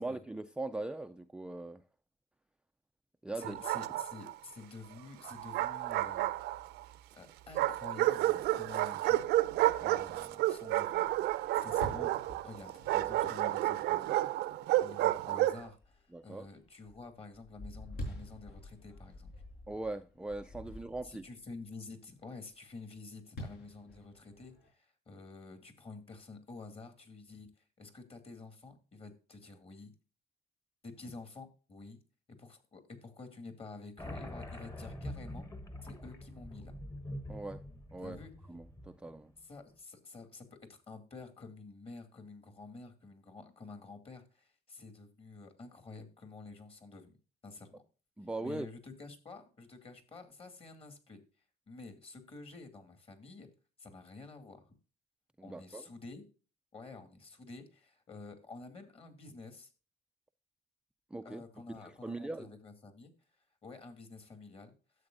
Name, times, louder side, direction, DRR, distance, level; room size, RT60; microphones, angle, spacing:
voice 1, 0.0-1.8 3.2-3.6 16.1-16.5 19.7-21.2 37.3-37.6 37.9-38.2 38.5-39.3 48.2-48.7 55.4-55.9 61.1-61.4 61.7-62.5, right 2 dB, 5° right, 0.4 m, -40 dB
voice 2, 3.4-6.3 7.1-9.3 9.8-12.1 12.4-14.2 14.8-19.3 21.0-27.5 27.8-29.9 30.8-32.0 32.3-35.5 35.8-36.7 38.0-38.3 39.4-47.2 47.4-47.8 48.4-51.2 51.7-53.5 53.8-54.7 55.4-56.2 56.7-59.7 61.2-63.1 63.6-64.7, left 3 dB, 35° left, 2.4 m, -50 dB
Bark, 3.4-4.3 5.2-6.8 7.5-15.7, right 15 dB, 85° right, 0.6 m, -31 dB
Fireworks, 10.9-14.4 15.0-15.1 15.6-16.0 16.4-21.3 23.4-24.7, left 1 dB, 75° left, 5.5 m, -47 dB
sound 1, 34.0-39.2, left 1 dB, 20° left, 1.2 m, -45 dB
12.5 x 7.9 x 2.5 m
cardioid pair, 110°, 17 cm